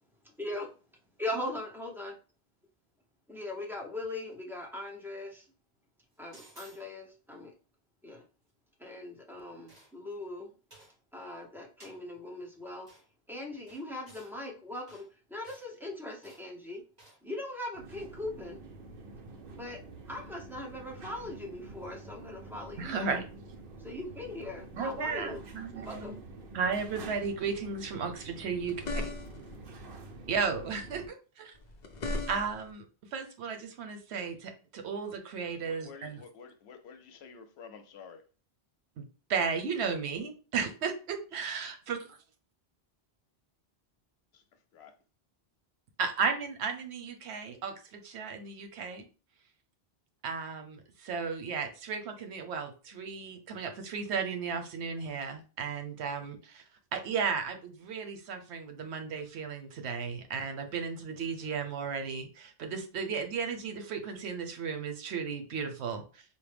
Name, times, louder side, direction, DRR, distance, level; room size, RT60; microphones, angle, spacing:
voice 1, 0.4-0.7 1.2-2.1 3.3-5.5 6.2-7.5 8.0-8.2 8.8-10.5 11.1-12.9 13.3-16.8 17.2-18.6 19.5-19.8 20.1-23.2 23.8-25.4 25.7-26.2, left 1 dB, ahead, 0.7 m, -40 dB
sound 1, 6.3-6.9 9.7-10.1 10.7-11.0 11.8-12.0 12.9-13.0 13.7-14.3 14.9-15.1 15.4-15.7 16.2-16.5 17.0-17.2, right 1 dB, 40° right, 1.6 m, -56 dB
sound 2, 17.7-31.1, right 3 dB, 60° right, 0.8 m, -48 dB
voice 2, 22.8-23.2 24.7-26.2 26.5-28.8 29.0-29.1 30.3-31.6 32.3-32.9 33.1-36.2 39.0-39.1 39.3-42.2 46.0-49.1 50.2-56.6 56.9-66.2, right 5 dB, 85° right, 0.9 m, -34 dB
sound 3, 28.6-29.6 31.6-32.7, left 2 dB, 50° left, 0.7 m, -36 dB
voice 3, 35.5-38.2 44.3-44.4 44.7-44.9, left 6 dB, 85° left, 0.9 m, -50 dB
4.3 x 2.1 x 3.3 m
omnidirectional pair, 1.1 m